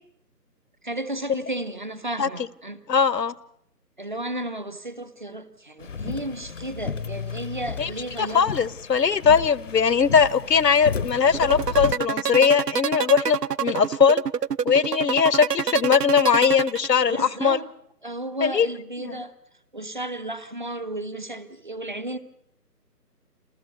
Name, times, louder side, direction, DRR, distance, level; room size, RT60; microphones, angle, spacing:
voice 1, 0.8-2.8 4.0-8.5 17.1-17.7 18.0-19.3 19.7-22.2, right 1 dB, 30° right, 14 dB, 0.8 m, -33 dB
voice 2, 2.9-3.3 7.8-7.9 8.2-14.2 14.6-17.6 18.4-18.7 19.0-19.1, left 6 dB, 80° left, 21 dB, 1.0 m, -20 dB
sound 1, 5.8-11.9, left 5 dB, 50° left, 0.8 m, -33 dB
sound 2, 11.3-17.3, right 8 dB, 70° right, 0.8 m, -26 dB
27.5 x 14.5 x 8.2 m, 0.73 s
figure-of-eight pair, 165°, 49 cm